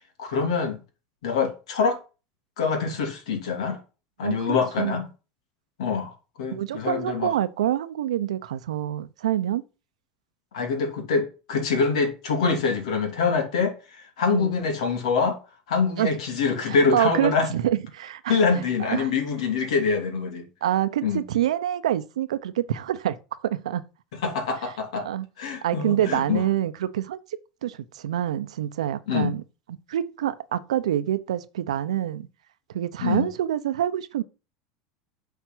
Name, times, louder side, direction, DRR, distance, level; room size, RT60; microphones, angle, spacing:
voice 1, 0.2-0.8 1.2-2.0 2.6-3.8 4.2-5.1 5.8-7.3 10.5-15.4 15.7-17.5 18.3-20.5 21.0-21.2 24.1-25.1 25.4-26.4 29.1-29.3 33.0-33.3, left 5 dB, 80° left, 2.7 m, -25 dB
voice 2, 4.2-5.0 6.5-9.6 14.3-14.5 16.0-16.1 16.6-18.4 18.9-19.2 20.6-23.2 23.4-23.8 25.0-25.3 25.6-27.2 27.6-29.4 29.9-32.3 32.7-34.2, right 11 dB, 90° right, 0.7 m, -26 dB
8.3 x 4.5 x 6.1 m
hypercardioid pair, 100°, 3 cm